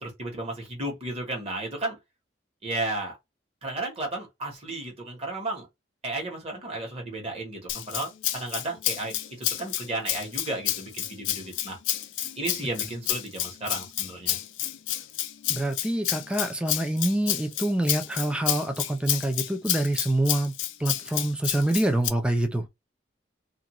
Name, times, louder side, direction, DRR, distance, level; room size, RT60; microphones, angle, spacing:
voice 1, 0.0-2.0 2.6-3.2 3.6-5.7 6.0-11.8 12.4-14.4, right 2 dB, 30° right, 1.1 m, -33 dB
Rattle (instrument), 7.7-22.1, left 13 dB, 85° left, 0.4 m, -30 dB
voice 2, 15.5-20.5 20.8-22.7, right 1 dB, 5° right, 0.4 m, -26 dB
2.5 x 2.2 x 2.9 m
head